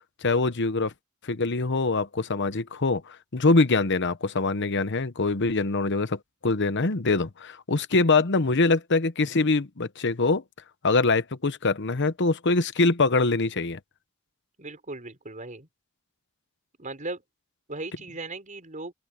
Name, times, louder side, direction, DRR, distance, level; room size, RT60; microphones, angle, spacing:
voice 1, 0.2-0.9 1.2-10.4 10.8-13.8, left 3 dB, 55° left, 1.0 m, -24 dB
voice 2, 14.6-15.7 16.8-17.2 17.7-18.9, right 2 dB, 35° right, 6.0 m, -37 dB
open air
head